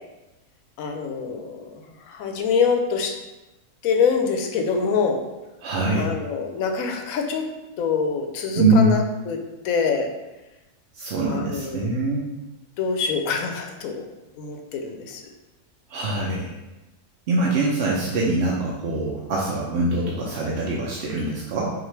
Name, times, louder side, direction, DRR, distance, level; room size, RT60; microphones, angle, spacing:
voice 1, 0.8-3.2 3.8-5.2 5.9-7.5 7.8-10.1 11.3-12.0 12.8-14.0 14.4-15.2, left 5 dB, 70° left, 4 dB, 0.9 m, -25 dB
voice 2, 5.6-6.1 8.6-8.9 11.0-12.2 15.9-16.5 17.3-21.6, right 2 dB, 60° right, -4 dB, 0.7 m, -23 dB
6.0 x 2.5 x 3.2 m, 1.0 s
omnidirectional pair, 1.7 m